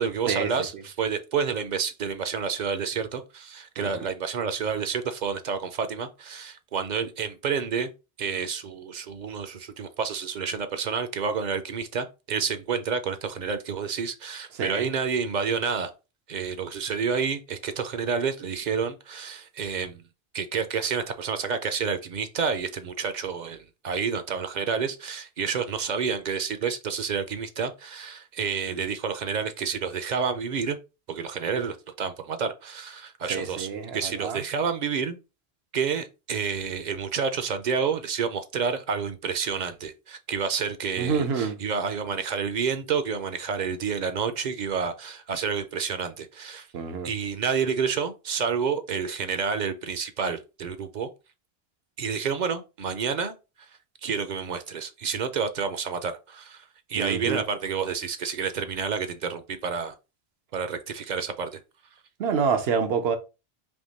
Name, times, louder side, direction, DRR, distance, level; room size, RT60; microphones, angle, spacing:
voice 1, 0.0-7.9 8.2-15.9 16.3-20.0 20.3-30.8 31.1-35.2 35.7-46.7 47.0-51.1 52.0-53.4 54.0-59.9 60.5-61.6, right 6 dB, 55° right, 0.6 m, -29 dB
voice 2, 14.6-14.9 33.3-34.4 41.0-41.6 46.7-47.1 56.9-57.4 62.2-63.2, right 6 dB, 85° right, 1.0 m, -27 dB
3.6 x 2.9 x 3.9 m
omnidirectional pair, 1.0 m